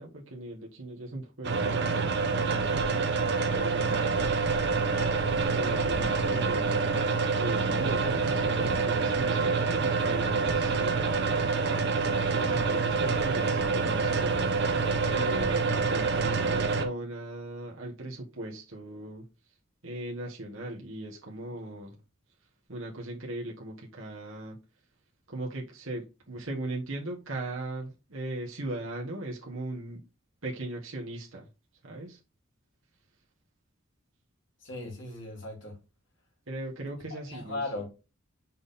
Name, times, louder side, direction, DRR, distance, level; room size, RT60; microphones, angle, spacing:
voice 1, 0.0-1.9 3.5-4.3 5.5-6.9 7.4-11.5 12.3-14.5 15.1-19.3 19.8-22.0 22.7-24.6 25.3-30.0 30.4-31.5 31.8-32.2 36.5-37.6, right 2 dB, 75° right, 1.6 m, -38 dB
sound 1, 1.4-16.9, right 4 dB, 55° right, 0.9 m, -27 dB
voice 2, 34.6-35.8 37.1-37.9, left 2 dB, 60° left, 3.4 m, -37 dB
6.2 x 4.2 x 3.7 m
head